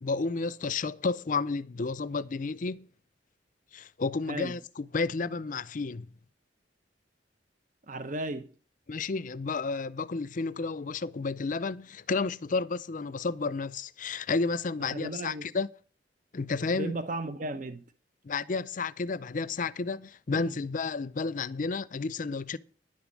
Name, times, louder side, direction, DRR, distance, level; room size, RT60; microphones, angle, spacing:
voice 1, 0.0-2.9 3.7-6.1 8.9-15.7 16.3-17.0 18.2-22.6, left 4 dB, 45° left, 0.5 m, -31 dB
voice 2, 7.9-8.5 14.9-15.5 16.7-17.8 20.4-20.5, right 2 dB, 45° right, 0.8 m, -35 dB
10.5 x 7.1 x 7.4 m
head